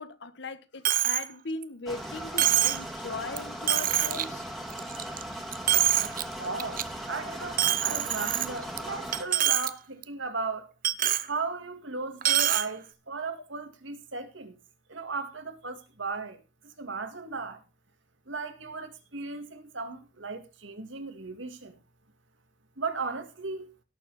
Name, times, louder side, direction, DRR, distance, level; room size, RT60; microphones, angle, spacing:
voice 1, 0.0-4.4, left 3 dB, 60° left, 1.3 m, -38 dB
Coin (dropping), 0.8-1.3 1.6-1.7 2.4-2.8 3.4-3.5 3.7-4.2 4.7-5.2 5.5-6.2 6.6-6.8 7.6-8.8 9.1-9.7 10.0-10.1 10.8-11.3 12.2-12.7, right 12 dB, 45° right, 0.8 m, -25 dB
sound 1, 1.9-9.2, right 1 dB, ahead, 2.2 m, -38 dB
voice 2, 6.0-6.8 7.1-10.7 11.3-14.6 14.9-17.6 18.3-21.8 22.8-23.7, right 4 dB, 70° right, 2.0 m, -36 dB
17.5 x 7.0 x 4.1 m
head